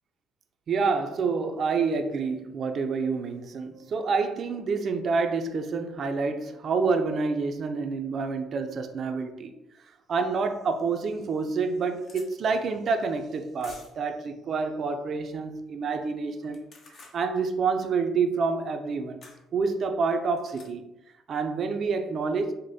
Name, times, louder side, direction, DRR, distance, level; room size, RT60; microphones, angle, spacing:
voice 1, 0.7-9.5 10.1-16.7 17.1-19.2 19.5-20.8 21.3-22.5, right 4 dB, 50° right, 6 dB, 0.4 m, -28 dB
sound 1, 10.6-10.7 11.3-11.4 11.5-12.3 13.6-14.1 16.4-17.2 19.2-19.4 20.4-20.7, left 3 dB, 55° left, 0.7 m, -50 dB
4.8 x 2.1 x 2.6 m, 0.91 s
cardioid pair, 90°, 0 cm